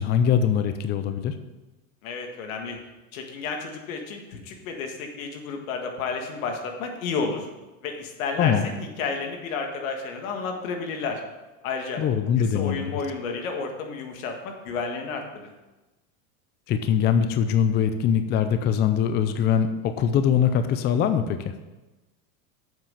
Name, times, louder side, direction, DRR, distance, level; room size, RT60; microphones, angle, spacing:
voice 1, 0.0-1.3 8.4-8.7 12.0-13.0 16.7-21.5, left 8 dB, 25° left, 9 dB, 0.4 m, -22 dB
voice 2, 2.0-2.8 3.1-7.5 7.8-11.2 11.6-12.0 12.4-15.5, left 4 dB, 80° left, 3 dB, 1.8 m, -31 dB
7.4 x 5.8 x 6.5 m, 1.1 s
supercardioid pair, 130°, 41 cm